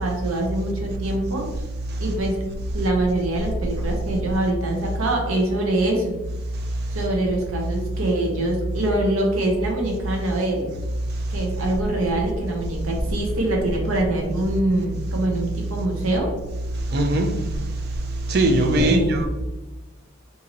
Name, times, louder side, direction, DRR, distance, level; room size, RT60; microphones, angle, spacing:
voice 1, 0.0-1.5 2.0-2.4 2.7-6.2 6.9-10.7 11.3-16.3 18.7-19.1, right 1 dB, 85° right, 0.8 m, -24 dB
voice 2, 16.9-17.3 18.3-19.3, right 1 dB, 50° right, 0.5 m, -19 dB
2.9 x 2.7 x 3.8 m
head